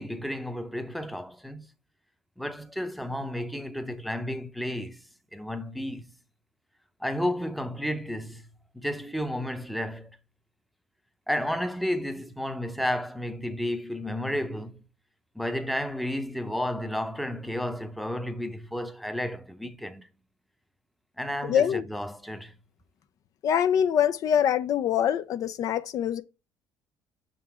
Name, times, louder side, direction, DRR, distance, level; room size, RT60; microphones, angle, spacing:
voice 1, 0.0-1.7 2.4-5.0 5.3-6.0 7.0-8.5 8.7-10.2 11.3-14.8 15.3-20.1 21.2-22.6, left 1 dB, ahead, 0.7 m, -32 dB
voice 2, 21.4-21.8 23.4-26.2, left 9 dB, 55° left, 0.5 m, -24 dB
6.2 x 3.8 x 4.4 m
supercardioid pair, 95°, 7 cm